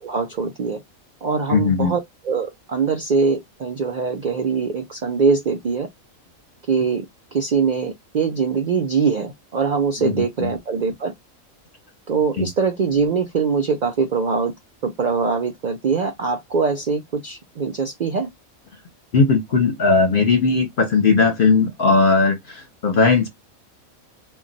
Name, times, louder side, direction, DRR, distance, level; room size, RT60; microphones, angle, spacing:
voice 1, 0.0-0.8 1.2-2.0 2.2-5.9 6.7-7.1 7.3-11.1 12.1-14.5 14.8-18.3, right 5 dB, 70° right, 0.4 m, -22 dB
voice 2, 1.5-1.9 10.0-10.5 12.4-12.5 19.1-23.3, left 4 dB, 50° left, 0.7 m, -18 dB
2.2 x 2.2 x 3.8 m
omnidirectional pair, 1.4 m